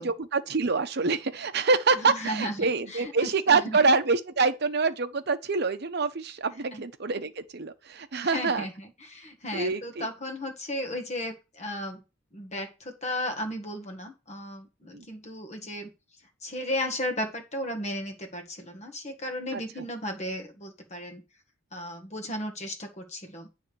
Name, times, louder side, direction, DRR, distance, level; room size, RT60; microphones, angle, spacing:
voice 1, 0.0-8.7 9.5-10.1 14.9-15.1 19.5-19.6, right 4 dB, 50° right, 0.8 m, -26 dB
voice 2, 1.9-3.8 6.7-6.8 8.2-12.0 12.3-15.9 16.4-21.2 21.7-23.5, left 1 dB, 35° left, 1.6 m, -35 dB
9.0 x 3.5 x 6.9 m
head